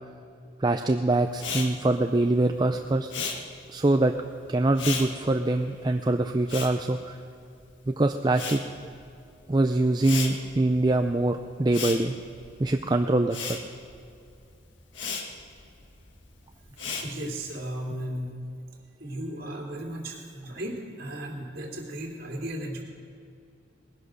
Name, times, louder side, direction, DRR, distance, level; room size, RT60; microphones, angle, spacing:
voice 1, 0.6-3.1 3.7-4.1 4.5-7.2 7.9-8.6 9.5-12.2 12.6-13.6, right 2 dB, 25° right, 6 dB, 0.4 m, -24 dB
Respiratory sounds, 1.3-7.8 8.1-17.5, left 5 dB, 85° left, 1.6 m, -37 dB
voice 2, 17.0-18.4 19.0-22.8, right 1 dB, 55° right, -2 dB, 3.0 m, -35 dB
19.5 x 10.5 x 6.4 m, 2.5 s
head